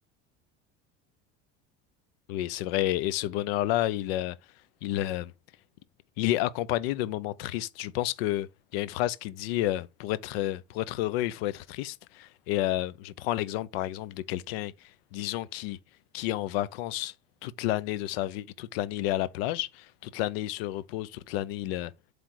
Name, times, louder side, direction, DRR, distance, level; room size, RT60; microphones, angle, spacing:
voice 1, 2.3-4.4 4.8-5.3 6.2-15.8 16.1-17.1 17.4-21.9, left 14 dB, 85° left, 0.7 m, -30 dB
7.7 x 3.4 x 4.6 m
supercardioid pair, 105°, 29 cm